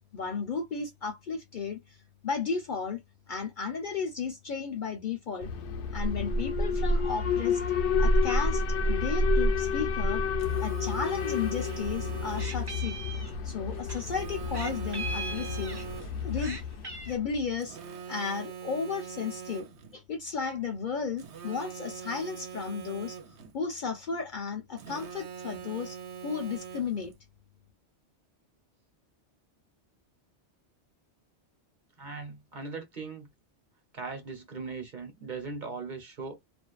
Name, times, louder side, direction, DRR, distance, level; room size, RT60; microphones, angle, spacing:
voice 1, 0.1-1.8 2.2-3.0 3.3-5.5 5.9-7.6 8.0-10.2 10.6-13.0 13.4-15.8 16.2-16.6 17.1-17.8 18.1-19.7 19.9-23.2 23.5-26.0 26.2-27.1, left 5 dB, 55° left, 0.6 m, -34 dB
Alarm, 5.4-17.4, left 3 dB, 75° left, 0.9 m, -29 dB
Telephone, 10.4-12.7 14.0-16.4 17.6-20.0 21.2-23.6 24.8-27.2, right 8 dB, 80° right, 1.0 m, -42 dB
Meow, 11.2-11.8 12.1-14.0 14.5-16.1 16.3-17.2, right 3 dB, 30° right, 0.6 m, -40 dB
voice 2, 32.0-33.3 33.9-36.4, right 4 dB, 45° right, 0.9 m, -39 dB
2.5 x 2.1 x 2.3 m
omnidirectional pair, 1.2 m